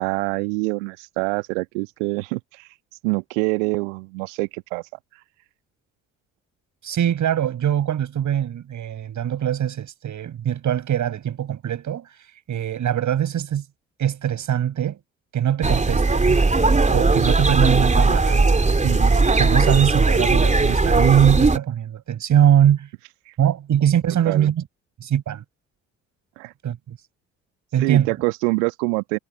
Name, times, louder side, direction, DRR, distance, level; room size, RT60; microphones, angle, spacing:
voice 1, 0.0-2.7 3.0-4.8 24.3-24.5 26.4-26.5 27.8-29.2, right 30 dB, 65° right, 1.8 m, -25 dB
voice 2, 6.8-12.1 12.5-13.6 14.0-15.0 15.3-16.4 16.9-18.4 18.8-22.9 23.4-24.6 25.0-25.4 26.6-27.0 27.7-28.1, right 10 dB, 50° right, 6.5 m, -22 dB
sound 1, 15.6-21.6, right 3 dB, 20° right, 3.4 m, -18 dB
figure-of-eight pair, 45°, 39 cm